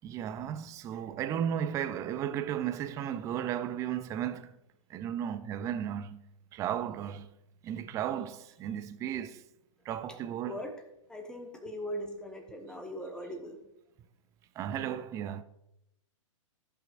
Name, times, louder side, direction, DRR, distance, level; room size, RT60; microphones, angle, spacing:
voice 1, 0.0-4.6 4.9-6.2 6.5-7.3 7.6-9.4 9.9-10.6 14.6-15.4, right 10 dB, 20° right, 0.3 m, -34 dB
voice 2, 11.1-13.6, equal, 5° left, 1.2 m, -40 dB
14.5 x 5.8 x 2.5 m
hypercardioid pair, 125°, 17 cm